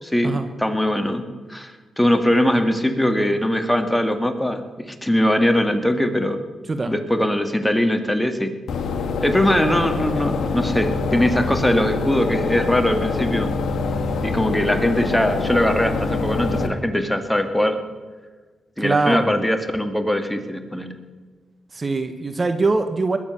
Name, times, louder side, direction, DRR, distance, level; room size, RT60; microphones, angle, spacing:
voice 1, 0.0-6.4 6.9-8.5 9.2-13.5 14.2-17.8 18.8-20.9, left 1 dB, 5° left, 7 dB, 2.0 m, -21 dB
sound 1, 8.7-16.7, left 4 dB, 70° left, 1.7 m, -25 dB
voice 2, 18.8-19.3 21.7-23.2, right 3 dB, 40° right, 9 dB, 1.2 m, -22 dB
21.0 x 7.5 x 7.0 m, 1.3 s
supercardioid pair, 50°, 0 cm